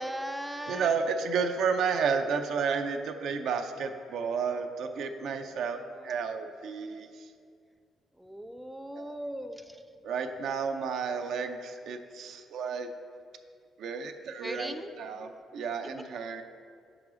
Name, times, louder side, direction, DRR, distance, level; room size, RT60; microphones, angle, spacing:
voice 1, 0.0-0.9 8.2-9.8 14.4-14.9, equal, 5° right, 7 dB, 0.4 m, -38 dB
voice 2, 0.7-5.8 6.0-7.3 9.0-9.2 10.0-12.9 13.8-16.4, right 5 dB, 75° right, 7 dB, 0.5 m, -32 dB
4.9 x 4.7 x 6.1 m, 2.2 s
cardioid pair, 90°, 0 cm